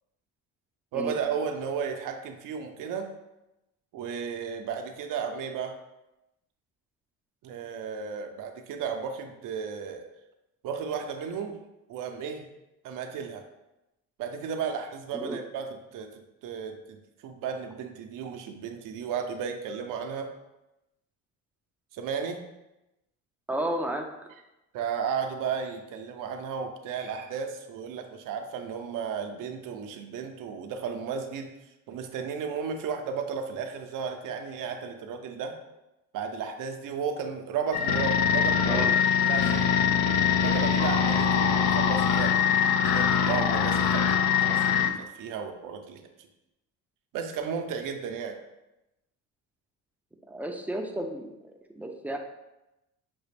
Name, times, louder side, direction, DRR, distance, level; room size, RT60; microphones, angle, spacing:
voice 1, 0.9-3.1 3.9-5.8 7.4-10.1 10.6-11.6 11.9-12.5 12.8-13.5 14.2-20.4 21.9-22.4 24.7-31.5 31.9-35.6 36.1-38.9 39.2-39.7 40.3-46.3 47.1-48.4, right 6 dB, 65° right, 6 dB, 0.6 m, -34 dB
voice 2, 23.5-24.1 38.6-39.0 50.3-52.2, right 1 dB, 5° right, 3 dB, 0.4 m, -32 dB
sound 1, 37.7-44.9, left 7 dB, 75° left, 0.5 m, -23 dB
5.9 x 2.4 x 3.2 m, 0.94 s
cardioid pair, 115°, 35 cm